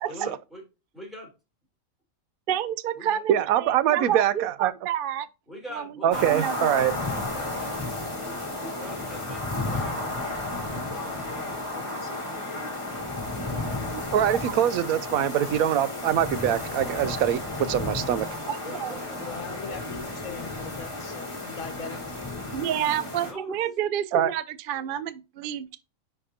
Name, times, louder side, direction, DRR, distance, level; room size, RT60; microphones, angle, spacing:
voice 1, 0.1-0.6 0.9-1.3 3.0-3.2 5.5-7.9 8.2-13.1 18.6-19.8 21.9-22.0 22.3-22.9 23.2-23.6, equal, ahead, 3.5 m, -44 dB
voice 2, 2.5-5.3 5.7-7.0 13.7-14.0 18.5-19.0 22.5-25.8, right 10 dB, 55° right, 0.6 m, -30 dB
voice 3, 3.3-4.7 6.0-6.9 14.1-18.3 24.1-24.3, right 10 dB, 85° right, 1.1 m, -23 dB
sound 1, 6.1-23.3, left 2 dB, 20° left, 1.7 m, -33 dB
voice 4, 11.7-12.1 19.2-22.3, left 6 dB, 65° left, 1.2 m, -41 dB
10.0 x 4.4 x 2.8 m
omnidirectional pair, 1.5 m